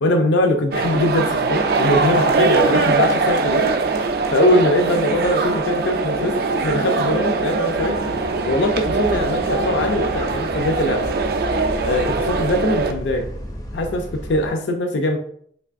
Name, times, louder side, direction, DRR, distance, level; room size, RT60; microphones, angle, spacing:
voice 1, 0.0-3.7 4.3-6.3 6.6-8.0 8.5-11.1 11.8-13.3 13.7-15.2, left 1 dB, 85° left, 4 dB, 0.4 m, -21 dB
sound 1, 0.7-12.9, right 4 dB, 55° right, 0.3 m, -21 dB
Bus, 7.7-14.5, equal, 20° left, 0.4 m, -33 dB
3.4 x 3.1 x 2.4 m, 0.62 s
head